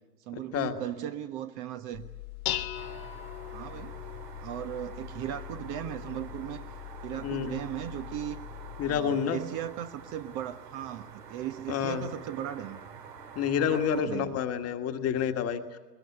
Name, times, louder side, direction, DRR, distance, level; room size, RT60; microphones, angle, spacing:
voice 1, 0.3-2.1 3.5-4.0 4.4-6.6 7.0-8.4 8.8-12.8 13.6-14.4, right 11 dB, 35° right, 1.3 m, -37 dB
Dishes pots and pans, 1.9-9.0, left 14 dB, 60° left, 1.5 m, -40 dB
sound 1, 2.7-14.0, right 6 dB, 75° right, 2.7 m, -47 dB
voice 2, 7.2-7.6 8.8-9.4 11.7-12.1 13.4-15.8, left 8 dB, 30° left, 1.7 m, -29 dB
21.5 x 21.0 x 9.9 m
hypercardioid pair, 105°, 49 cm